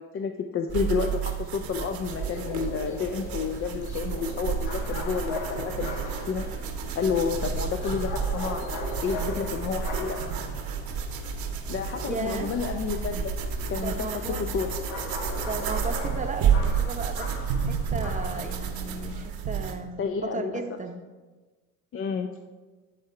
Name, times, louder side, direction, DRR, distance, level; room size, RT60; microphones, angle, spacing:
voice 1, 0.0-6.5 6.9-8.7 9.0-10.2 11.7-13.3 13.7-14.7 20.0-20.5 21.9-22.3, left 6 dB, 35° left, 5 dB, 0.5 m, -30 dB
sound 1, 0.7-19.8, right 7 dB, 60° right, 1.0 m, -31 dB
sound 2, 1.2-19.3, left 2 dB, 75° left, 1.3 m, -37 dB
voice 2, 12.1-12.5 13.8-14.4 15.5-17.4 17.7-21.0, right 3 dB, 20° right, 5 dB, 0.8 m, -35 dB
9.8 x 3.7 x 4.5 m, 1.3 s
supercardioid pair, 80°, 39 cm